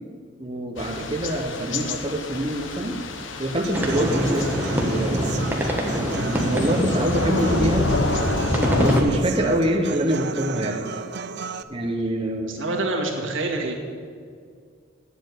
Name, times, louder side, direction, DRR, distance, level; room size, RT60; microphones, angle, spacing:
voice 1, 0.4-3.0 3.4-5.5 6.2-7.9 8.8-10.9 11.7-12.5, right 1 dB, 25° right, 1 dB, 0.9 m, -25 dB
Thunder / Rain, 0.8-9.0, left 2 dB, 75° left, 1.1 m, -28 dB
Human voice / Acoustic guitar, 3.6-11.6, right 5 dB, 55° right, 0.5 m, -35 dB
sound 1, 3.7-9.0, equal, 10° right, 1.4 m, -25 dB
voice 2, 12.4-13.7, right 2 dB, 80° right, 0 dB, 2.1 m, -26 dB
9.6 x 7.9 x 9.3 m, 2.2 s
head